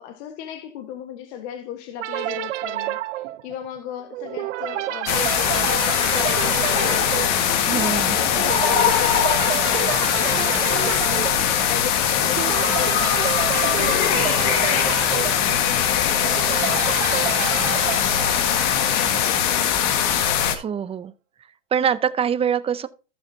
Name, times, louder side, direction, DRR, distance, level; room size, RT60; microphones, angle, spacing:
voice 1, 0.0-13.2 13.5-19.8, left 9 dB, 65° left, 1.5 m, -36 dB
sound 1, 2.0-19.2, right 15 dB, 80° right, 0.6 m, -29 dB
sound 2, 5.1-20.5, left 9 dB, 50° left, 1.7 m, -21 dB
voice 2, 7.6-8.2 20.5-21.1 21.7-22.9, right 8 dB, 15° right, 0.6 m, -24 dB
15.0 x 6.7 x 2.8 m
hypercardioid pair, 120°, 36 cm